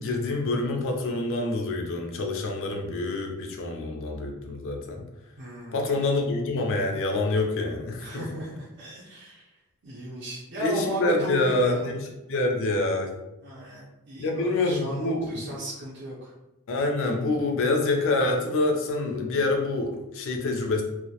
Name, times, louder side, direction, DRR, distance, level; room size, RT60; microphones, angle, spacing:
voice 1, 0.0-5.0 5.7-8.3 10.6-13.2 14.2-15.4 16.7-20.8, left 2 dB, 60° left, 2 dB, 0.4 m, -26 dB
voice 2, 5.4-5.9 8.0-9.5 9.8-11.9 13.4-16.3, equal, 55° right, -7 dB, 0.5 m, -35 dB
2.2 x 2.1 x 2.7 m, 0.96 s
head